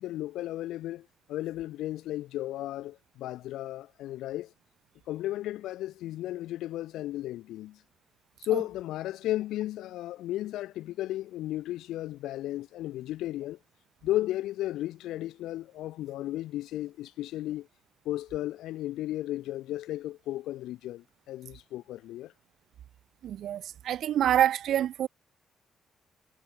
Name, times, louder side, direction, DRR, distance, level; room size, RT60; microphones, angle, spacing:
voice 1, 0.0-4.5 5.1-7.8 8.4-13.6 14.0-17.7 18.1-22.3, left 14 dB, 85° left, 1.8 m, -34 dB
voice 2, 23.2-25.1, right 11 dB, 70° right, 0.6 m, -26 dB
cardioid pair, 90°, 0 cm